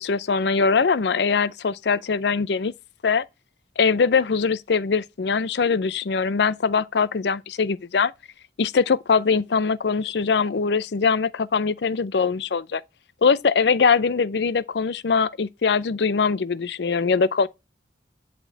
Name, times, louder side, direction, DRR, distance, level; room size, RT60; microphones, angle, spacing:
voice 1, 0.0-2.7 3.0-3.2 3.8-8.1 8.6-12.8 13.2-17.5, left 5 dB, 65° left, 0.5 m, -22 dB
11.0 x 4.3 x 4.5 m
head